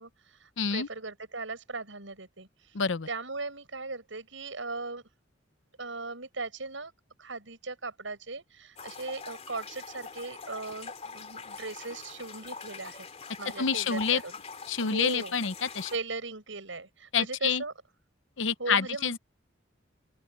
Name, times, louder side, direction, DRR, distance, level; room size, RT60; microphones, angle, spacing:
voice 1, 0.0-2.5 3.1-5.0 5.8-6.9 7.2-13.1 13.4-14.3 14.8-15.3 15.9-17.7 18.6-19.2, right 3 dB, 90° right, 6.4 m, -38 dB
voice 2, 0.6-0.9 2.7-3.1 13.6-14.2 14.7-15.9 17.1-17.6 18.4-19.2, left 6 dB, 85° left, 0.9 m, -28 dB
sound 1, 8.8-16.0, left 5 dB, 35° left, 3.2 m, -44 dB
open air
head